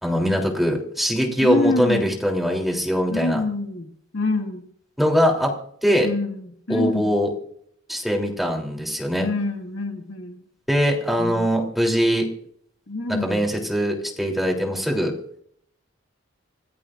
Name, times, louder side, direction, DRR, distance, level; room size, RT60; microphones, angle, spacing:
voice 1, 0.0-3.4 5.0-5.5 5.8-6.1 6.7-7.3 7.9-9.3 10.7-12.3 13.1-15.1, equal, ahead, 0 dB, 3.4 m, -22 dB
voice 2, 1.4-2.2 3.1-4.7 6.0-7.1 9.2-10.5 11.2-11.5 12.9-13.5, left 2 dB, 85° left, 2 dB, 2.1 m, -26 dB
27.0 x 17.0 x 2.6 m, 0.65 s
head